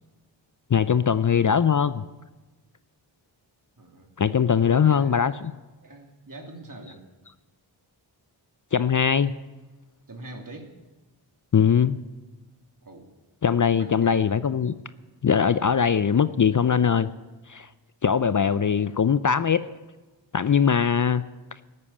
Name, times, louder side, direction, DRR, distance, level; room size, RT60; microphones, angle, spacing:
voice 1, 0.7-2.0 4.2-5.3 8.7-9.3 11.5-12.0 13.4-14.7 15.2-17.1 17.5-17.7 18.0-19.7 20.3-21.2, left 7 dB, 40° left, 14 dB, 0.6 m, -21 dB
voice 2, 3.8-4.1 4.5-5.3 5.8-7.0 10.1-10.7 12.8-13.1 13.7-14.4, right 2 dB, 40° right, 3 dB, 2.9 m, -42 dB
13.0 x 9.8 x 8.6 m, 1.2 s
cardioid pair, 50°, 47 cm